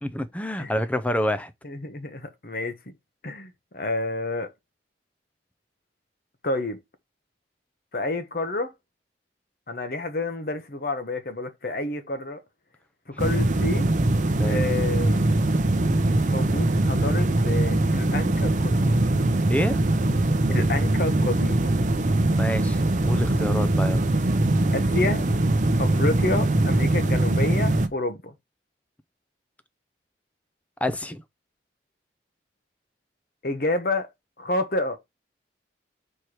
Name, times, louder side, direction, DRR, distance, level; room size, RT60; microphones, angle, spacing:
voice 1, 0.0-1.5 13.1-13.2 14.4-14.6 19.5-19.8 22.3-24.1 30.8-31.2, left 1 dB, 10° left, 0.5 m, -28 dB
voice 2, 1.6-2.9 3.2-4.5 6.4-6.8 7.9-8.7 9.7-12.4 13.2-13.9 14.4-15.2 16.3-19.0 20.5-21.8 24.7-25.2 25.8-28.3 33.4-34.1 34.4-35.0, left 2 dB, 50° left, 1.1 m, -29 dB
sound 1, 13.2-27.9, right 2 dB, 40° right, 0.7 m, -22 dB
4.5 x 4.5 x 4.9 m
head